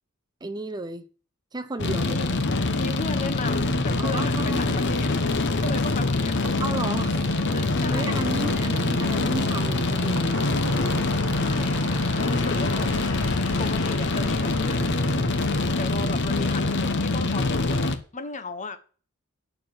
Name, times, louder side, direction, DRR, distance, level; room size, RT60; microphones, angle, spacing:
voice 1, 0.4-1.1 1.5-2.3 4.0-5.2 6.6-7.1 7.9-10.5, right 2 dB, 20° right, 0.8 m, -33 dB
sound 1, 1.8-18.0, left 2 dB, 55° left, 1.1 m, -24 dB
voice 2, 2.7-5.1 5.6-6.6 7.5-8.7 11.4-12.9 13.6-14.9 15.8-18.8, left 3 dB, 35° left, 1.2 m, -35 dB
sound 2, 4.5-14.7, right 4 dB, 70° right, 1.2 m, -42 dB
sound 3, 8.5-16.8, left 3 dB, 85° left, 2.7 m, -40 dB
11.5 x 4.7 x 7.8 m
head